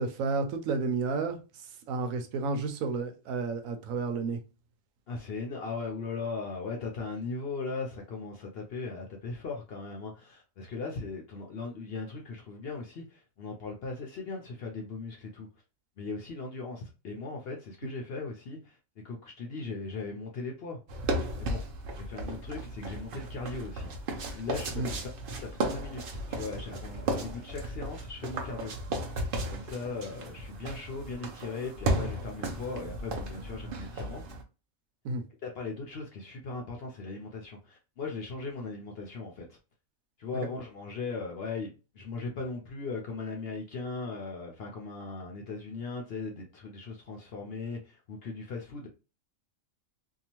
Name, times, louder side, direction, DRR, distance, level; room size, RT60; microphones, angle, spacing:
voice 1, 0.0-4.4 24.7-24.9 35.0-35.2, right 4 dB, 90° right, 1.0 m, -31 dB
voice 2, 5.1-15.5 16.0-20.8 21.4-21.6 22.0-23.9 24.3-25.1 25.4-28.7 29.5-34.2 35.4-39.6 40.2-48.9, left 4 dB, 60° left, 0.7 m, -38 dB
sound 1, 20.9-34.4, right 1 dB, 55° right, 0.7 m, -35 dB
2.7 x 2.3 x 2.9 m
omnidirectional pair, 1.4 m